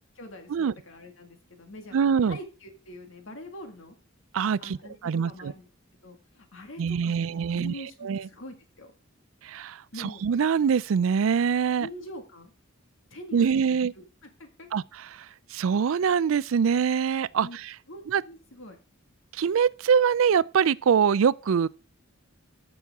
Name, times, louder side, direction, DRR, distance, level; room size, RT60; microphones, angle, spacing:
voice 1, 0.2-4.0 4.6-5.7 6.0-8.9 9.9-10.2 11.8-12.5 13.1-14.0 14.4-14.7 17.4-17.6 17.9-18.8, left 1 dB, 75° left, 1.9 m, -44 dB
voice 2, 1.9-2.4 4.3-4.8 5.0-5.5 6.8-7.7 8.0-8.2 9.4-11.9 13.3-13.9 14.7-14.8 15.5-17.5 18.1-18.2 19.3-21.7, right 7 dB, 80° right, 0.4 m, -23 dB
14.0 x 6.3 x 3.6 m
head